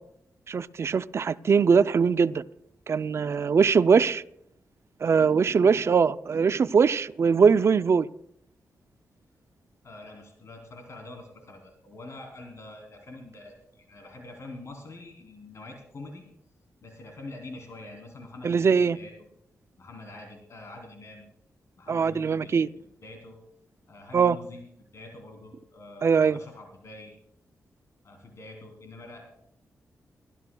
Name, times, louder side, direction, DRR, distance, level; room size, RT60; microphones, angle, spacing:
voice 1, 0.5-2.4 2.9-4.2 5.0-8.1 18.4-19.0 21.9-22.7 24.1-24.4 26.0-26.4, right 6 dB, 50° right, 15 dB, 0.4 m, -21 dB
voice 2, 9.8-16.2 16.8-19.1 19.8-21.3 21.8-23.4 23.9-24.6 24.9-27.1 28.0-29.2, left 2 dB, 60° left, 1 dB, 3.3 m, -45 dB
28.0 x 12.5 x 2.3 m, 0.72 s
cardioid pair, 80°, 6 cm